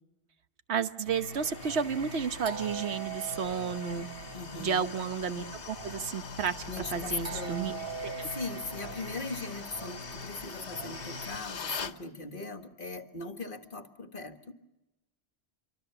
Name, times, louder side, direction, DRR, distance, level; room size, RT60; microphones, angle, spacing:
voice 1, 0.7-4.1 4.6-7.8 8.0-8.3, right 6 dB, 80° right, 9 dB, 1.4 m, -32 dB
sound 1, 1.1-12.0, left 6 dB, 85° left, 1.4 m, -44 dB
Singing, 1.1-11.4, right 3 dB, 55° right, 1.5 m, -42 dB
voice 2, 4.3-4.8 6.7-7.7 8.3-14.5, left 3 dB, 50° left, 6 dB, 2.0 m, -39 dB
26.5 x 24.0 x 6.9 m, 0.98 s
omnidirectional pair, 1.1 m